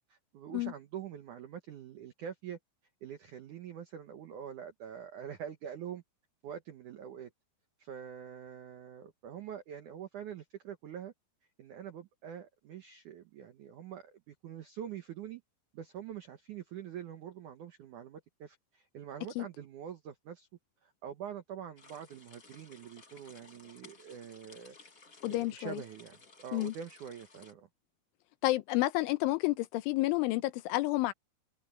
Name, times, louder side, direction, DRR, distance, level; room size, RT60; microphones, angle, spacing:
voice 1, 0.0-2.6 3.0-6.0 6.4-7.3 7.8-11.1 11.6-15.4 15.7-20.5 20.8-24.8 25.3-27.7, right 9 dB, 80° right, 1.7 m, -45 dB
sound 1, 21.8-27.5, left 4 dB, 35° left, 1.5 m, -57 dB
voice 2, 25.2-25.8 26.5-26.7 28.4-31.1, left 18 dB, 90° left, 3.4 m, -30 dB
omnidirectional pair, 5.4 m